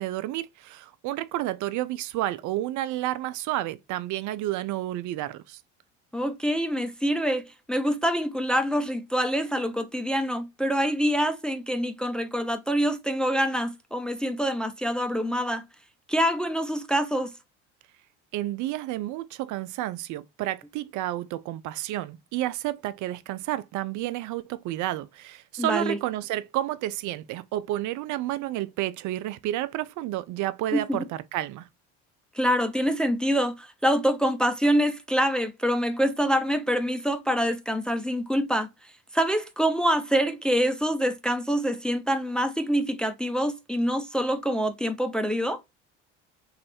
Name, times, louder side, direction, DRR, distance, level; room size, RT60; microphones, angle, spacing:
voice 1, 0.0-5.6 18.3-31.7, right 14 dB, 55° right, 0.5 m, -30 dB
voice 2, 6.1-15.6 16.1-17.3 25.6-26.0 30.7-31.0 32.3-38.7 39.1-45.6, equal, ahead, 0.6 m, -25 dB
3.2 x 2.7 x 4.1 m
hypercardioid pair, 70°, 36 cm